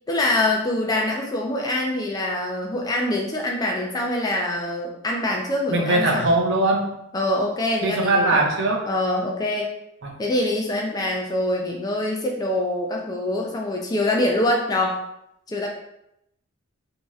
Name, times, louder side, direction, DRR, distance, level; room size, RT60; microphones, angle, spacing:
voice 1, 0.1-6.3 7.1-8.4 8.9-9.7 10.2-15.0 15.5-15.7, left 1 dB, 20° left, 0 dB, 0.3 m, -24 dB
voice 2, 5.7-7.0 7.8-8.9 10.0-10.2, right 2 dB, 60° right, 2 dB, 0.5 m, -21 dB
2.9 x 2.7 x 2.3 m, 0.80 s
head